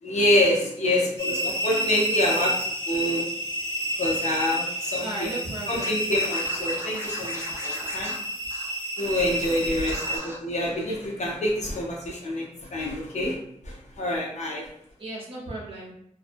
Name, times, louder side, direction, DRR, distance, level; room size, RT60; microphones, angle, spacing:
voice 1, 0.0-2.5 2.9-3.2 4.0-5.4 5.7-8.1 9.0-13.4 13.6-14.7, left 1 dB, 65° left, -2 dB, 0.6 m, -26 dB
voice 2, 0.8-1.1 1.9-2.5 5.0-6.0 9.7-10.2 15.0-15.9, right 2 dB, 45° right, -4 dB, 0.8 m, -37 dB
sound 1, 1.2-10.2, equal, 35° left, 0.9 m, -30 dB
Scratching (performance technique), 5.8-9.1 9.4-9.6 9.9-10.4, left 1 dB, 20° right, 0.5 m, -39 dB
2.4 x 2.1 x 2.5 m, 0.72 s
wide cardioid pair, 130°, 13 cm